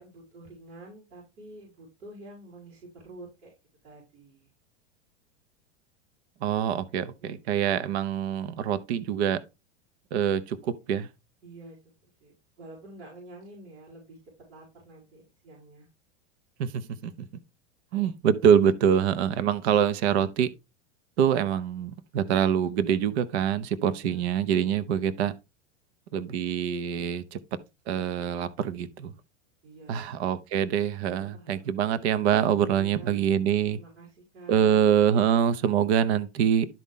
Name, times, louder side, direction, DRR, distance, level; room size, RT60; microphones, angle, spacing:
voice 1, 0.0-3.5 3.8-4.5 7.2-7.6 11.4-11.8 12.2-14.2 14.5-15.9 21.7-21.9 24.0-24.3 26.2-26.4 29.6-30.1 31.2-31.7 32.7-33.2 33.7-34.8, right 2 dB, 85° right, 5.1 m, -48 dB
voice 2, 6.4-9.4 10.1-11.1 16.6-17.1 17.9-20.5 21.2-25.3 26.1-27.4 27.9-29.1 29.9-33.8 34.5-36.7, right 8 dB, 70° right, 0.9 m, -25 dB
12.0 x 4.1 x 3.7 m
hypercardioid pair, 115°, 34 cm